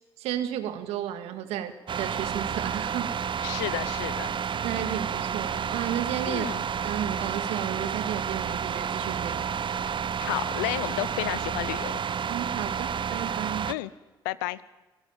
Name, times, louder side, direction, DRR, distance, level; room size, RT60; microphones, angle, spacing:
voice 1, 0.2-1.7 2.0-3.2 4.6-6.5 6.8-9.5 12.3-13.7, right 10 dB, 75° right, 10 dB, 2.0 m, -33 dB
sound 1, 1.9-13.7, right 7 dB, 50° right, 0.9 m, -30 dB
voice 2, 3.4-4.3 6.3-6.6 10.2-12.0 13.7-13.9 14.2-14.6, left 17 dB, 85° left, 19 dB, 0.7 m, -32 dB
27.5 x 17.0 x 9.0 m, 1.1 s
hypercardioid pair, 50°, 11 cm